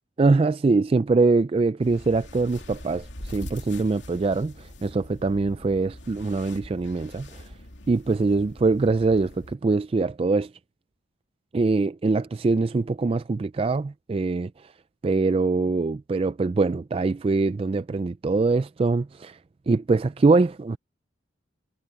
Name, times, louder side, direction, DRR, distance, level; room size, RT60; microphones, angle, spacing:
voice 1, 0.2-7.4 7.9-10.5 11.5-14.5 15.0-19.4 19.7-20.8, right 3 dB, 30° right, 0.3 m, -23 dB
sound 1, 1.8-9.5, left 1 dB, 65° left, 2.9 m, -43 dB
head